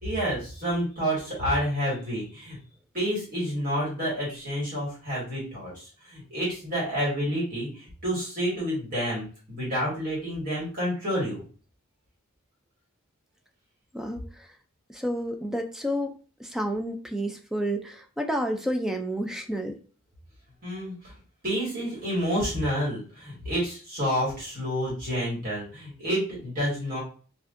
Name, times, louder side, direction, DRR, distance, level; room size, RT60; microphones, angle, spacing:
voice 1, 0.0-2.6 2.9-11.4 20.6-21.1 21.4-27.0, equal, 40° right, -6 dB, 2.0 m, -29 dB
voice 2, 13.9-14.5 14.9-16.1 16.4-19.8, equal, ahead, 4 dB, 0.3 m, -30 dB
4.7 x 2.6 x 2.5 m, 0.39 s
head